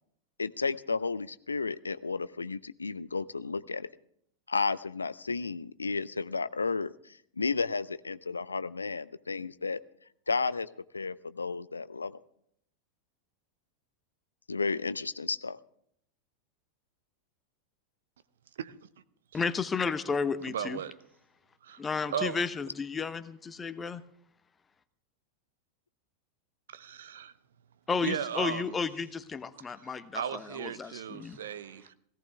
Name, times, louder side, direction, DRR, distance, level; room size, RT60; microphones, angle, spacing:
voice 1, 0.4-3.9 4.5-9.8 10.3-12.2 14.5-15.6, left 4 dB, 75° left, 0.5 m, -33 dB
voice 2, 19.3-20.8 21.8-24.0 27.9-31.4, left 5 dB, 15° left, 0.9 m, -32 dB
voice 3, 20.5-20.9 21.6-21.8 22.1-22.4 26.7-27.3 28.0-28.8 30.1-31.9, right 8 dB, 60° right, 0.8 m, -36 dB
17.5 x 16.5 x 3.5 m
figure-of-eight pair, 90°, 0 cm